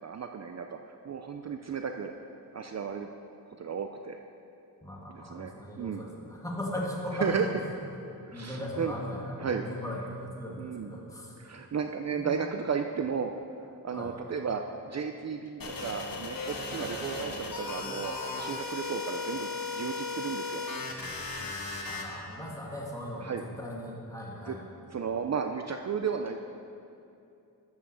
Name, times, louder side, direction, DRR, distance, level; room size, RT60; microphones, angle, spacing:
voice 1, 0.0-2.1 2.5-3.1 3.5-4.2 5.1-6.0 7.2-7.5 8.3-8.9 9.4-9.6 10.6-10.9 11.4-13.3 13.8-20.6 23.2-23.4 24.5-24.6 24.9-26.4, right 6 dB, 50° right, 5 dB, 0.5 m, -34 dB
voice 2, 4.8-7.7 8.3-11.4 12.1-12.4 13.9-14.2 16.8-16.9 21.8-24.7, left 1 dB, 10° left, -3 dB, 1.8 m, -38 dB
sound 1, 15.6-22.0, left 3 dB, 70° left, 1.4 m, -36 dB
12.5 x 5.7 x 6.4 m, 2.6 s
wide cardioid pair, 130°, 36 cm